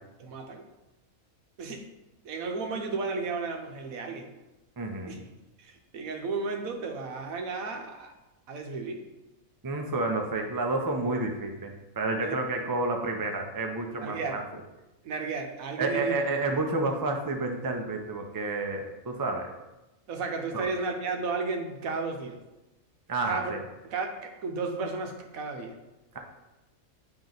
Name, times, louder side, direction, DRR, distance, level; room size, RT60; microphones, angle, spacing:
voice 1, 0.2-0.6 1.6-1.9 2.2-4.3 5.1-5.2 5.6-8.1 8.5-9.1 12.2-12.4 13.9-14.4 15.0-16.2 20.1-22.4 23.2-23.5 23.9-25.8, right 4 dB, 80° right, 4 dB, 1.2 m, -33 dB
voice 2, 4.8-5.2 9.6-14.4 15.8-19.5 20.5-20.7 23.1-23.6, right 2 dB, 30° right, 3 dB, 0.3 m, -30 dB
8.8 x 3.0 x 3.9 m, 1.0 s
omnidirectional pair, 1.5 m